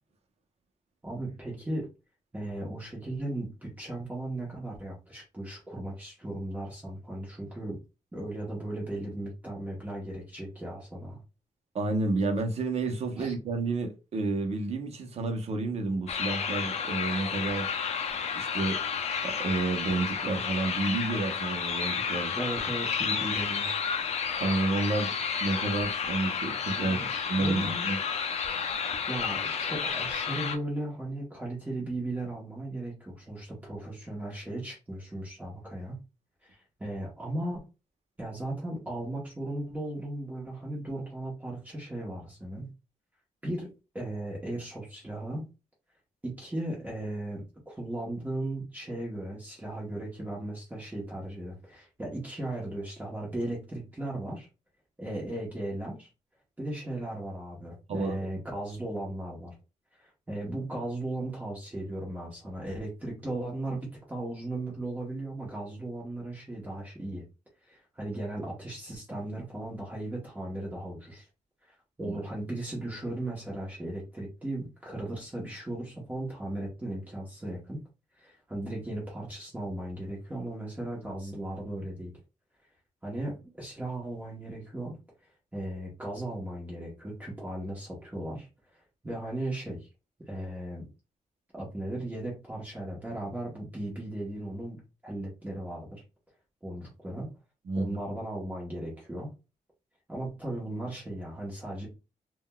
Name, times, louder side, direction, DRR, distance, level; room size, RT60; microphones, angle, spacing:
voice 1, 1.0-1.9 2.3-7.8 8.1-11.2 13.2-13.3 22.4-23.7 26.8-27.9 29.1-36.0 36.4-37.6 38.2-42.7 43.4-43.7 43.9-45.4 46.2-54.5 55.0-56.1 56.6-59.6 60.0-67.2 67.6-71.3 71.7-77.8 78.2-82.1 83.0-85.0 85.5-88.5 89.0-89.9 90.3-90.9 91.5-94.8 95.0-96.0 96.6-97.3 97.8-99.3 100.1-101.9, right 1 dB, 10° right, 1.0 m, -36 dB
voice 2, 11.7-17.7 18.3-18.8 19.2-22.4 24.4-25.1 25.4-27.0 27.3-28.0 57.9-58.2 72.0-72.2 97.7-98.0, right 3 dB, 50° right, 0.7 m, -30 dB
sound 1, 16.1-30.6, left 6 dB, 55° left, 0.5 m, -31 dB
3.6 x 2.2 x 2.2 m
wide cardioid pair, 145°, 13 cm